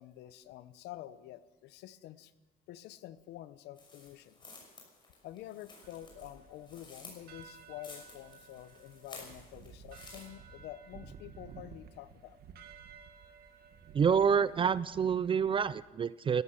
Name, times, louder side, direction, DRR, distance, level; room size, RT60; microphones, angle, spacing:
voice 1, 0.0-2.3 2.7-4.4 5.2-12.4, left 13 dB, 85° left, 15 dB, 0.9 m, -48 dB
sound 1, 3.8-10.3, left 3 dB, 25° left, 5.8 m, -53 dB
sound 2, 5.8-15.7, right 6 dB, 65° right, 1.4 m, -54 dB
voice 2, 13.9-16.4, right 7 dB, 30° right, 18 dB, 0.4 m, -27 dB
16.5 x 13.5 x 6.5 m, 1.2 s
cardioid pair, 110°, 17 cm